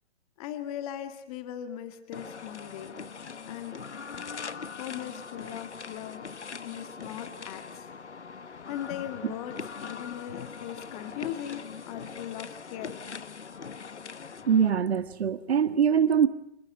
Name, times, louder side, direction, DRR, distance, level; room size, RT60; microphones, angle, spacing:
voice 1, 0.4-3.0 3.5-3.8 4.7-6.3 6.6-7.9 8.7-13.0, left 11 dB, 35° left, 8 dB, 2.2 m, -39 dB
sound 1, 2.1-14.7, left 5 dB, 85° left, 1.2 m, -41 dB
voice 2, 14.5-16.3, right 7 dB, 65° right, 12 dB, 1.7 m, -23 dB
27.5 x 20.0 x 8.0 m, 0.78 s
hypercardioid pair, 135°, 34 cm